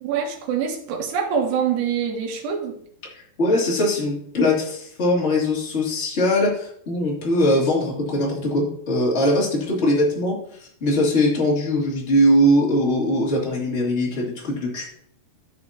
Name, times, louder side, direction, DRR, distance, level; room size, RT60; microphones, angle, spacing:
voice 1, 0.0-2.7, right 7 dB, 80° right, 1 dB, 3.6 m, -25 dB
voice 2, 3.1-14.9, left 1 dB, 25° left, -3 dB, 1.7 m, -21 dB
13.0 x 6.3 x 2.9 m, 0.65 s
omnidirectional pair, 4.9 m